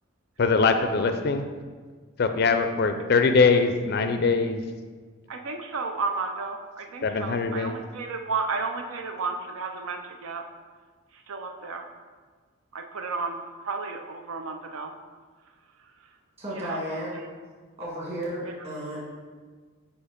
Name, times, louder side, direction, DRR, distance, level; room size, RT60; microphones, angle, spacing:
voice 1, 0.4-1.5 2.2-4.6 7.0-7.7, left 4 dB, 50° left, 7 dB, 0.4 m, -22 dB
voice 2, 5.3-10.4 11.1-11.8 12.7-14.9 16.0-16.1 16.5-17.3 18.4-18.5, right 4 dB, 80° right, 4 dB, 0.5 m, -33 dB
voice 3, 16.4-17.2 17.8-19.0, right 1 dB, 30° right, -6 dB, 1.9 m, -33 dB
8.2 x 2.8 x 5.0 m, 1.5 s
head